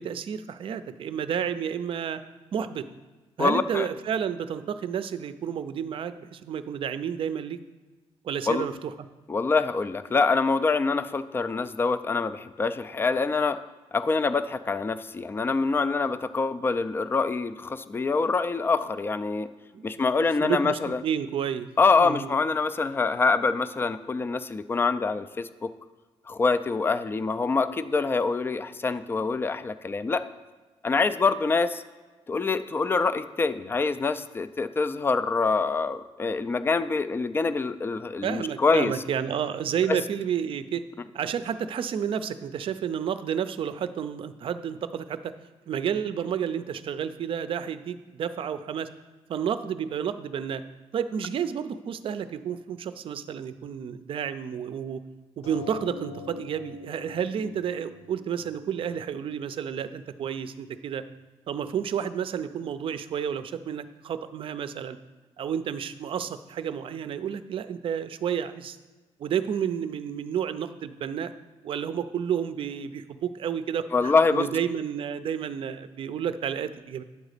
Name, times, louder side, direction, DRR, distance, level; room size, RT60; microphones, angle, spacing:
voice 1, 0.0-2.2 2.5-2.9 3.4-7.6 8.2-8.9 19.7-20.1 20.4-21.7 22.0-22.3 38.2-40.8 41.1-45.3 45.7-48.9 49.3-50.6 50.9-55.0 55.4-61.0 61.5-65.0 65.4-68.8 69.2-71.3 71.6-77.0, right 8 dB, 55° right, 12 dB, 0.5 m, -31 dB
voice 2, 3.4-3.9 8.5-8.7 9.3-13.6 13.9-19.5 19.8-21.0 21.8-25.7 26.3-30.2 30.8-31.8 32.3-38.9 39.9-40.0 73.9-74.5, left 4 dB, 20° left, 12 dB, 0.4 m, -25 dB
sound 1, 55.4-60.4 61.2-61.3 61.6-61.7, left 3 dB, 85° left, 1.6 m, -45 dB
9.6 x 4.0 x 6.6 m, 1.3 s
cardioid pair, 125°, 11 cm